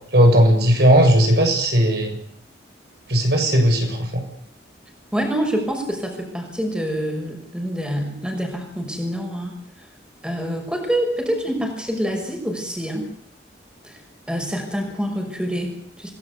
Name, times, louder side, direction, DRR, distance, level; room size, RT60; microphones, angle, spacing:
voice 1, 0.1-2.2 3.1-4.2, equal, 60° right, 4 dB, 6.8 m, -16 dB
voice 2, 5.1-9.6 10.2-13.1 13.8-14.0 14.3-16.1, equal, 5° right, 3 dB, 6.0 m, -26 dB
28.0 x 19.0 x 8.4 m, 0.66 s
head